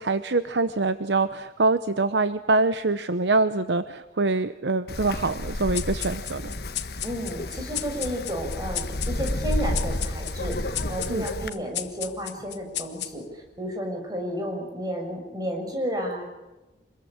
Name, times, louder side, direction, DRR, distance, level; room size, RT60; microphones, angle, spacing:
voice 1, 0.0-6.5 11.1-11.2, right 3 dB, 85° right, 11 dB, 0.9 m, -24 dB
Wind, 4.9-11.5, left 1 dB, 60° left, 1.5 m, -31 dB
sound 1, 5.7-13.5, left 13 dB, 75° left, 1.3 m, -36 dB
voice 2, 7.0-16.3, equal, 20° right, 3 dB, 6.3 m, -32 dB
26.0 x 21.5 x 8.8 m, 1.0 s
head